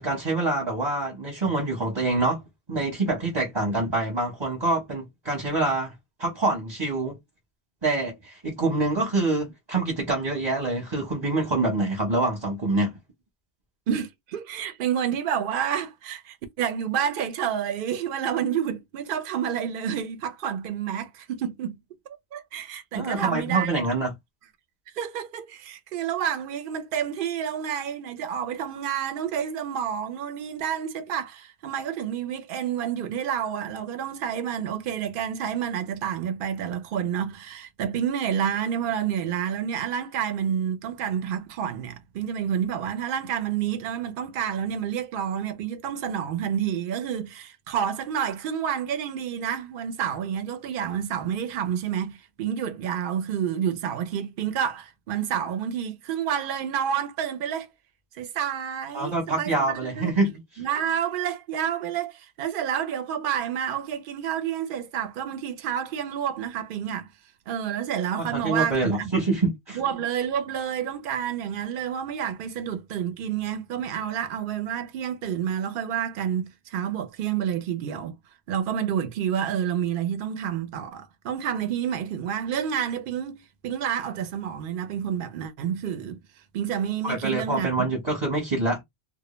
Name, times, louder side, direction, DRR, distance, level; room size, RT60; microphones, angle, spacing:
voice 1, 0.0-2.4 2.7-5.9 6.2-7.2 7.8-13.0 22.9-24.1 58.9-60.3 68.2-69.8 87.0-88.8, right 2 dB, 25° right, 0.8 m, -26 dB
voice 2, 13.9-21.8 22.3-23.7 24.9-57.7 58.2-60.1 60.6-67.1 67.5-69.1 69.7-78.1 78.5-86.2 86.5-87.9, right 8 dB, 60° right, 0.6 m, -29 dB
2.2 x 2.0 x 3.0 m
omnidirectional pair, 1.2 m